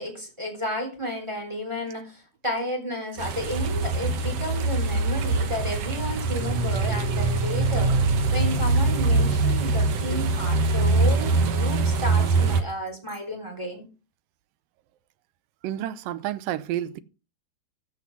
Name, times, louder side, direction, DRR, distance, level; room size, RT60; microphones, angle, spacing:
voice 1, 0.0-7.9 8.3-13.8, equal, 10° right, 3.2 m, -32 dB
sound 1, 3.2-12.6, right 3 dB, 60° right, 1.6 m, -23 dB
voice 2, 15.6-17.0, right 12 dB, 75° right, 2.2 m, -30 dB
14.5 x 5.9 x 6.0 m
omnidirectional pair, 4.3 m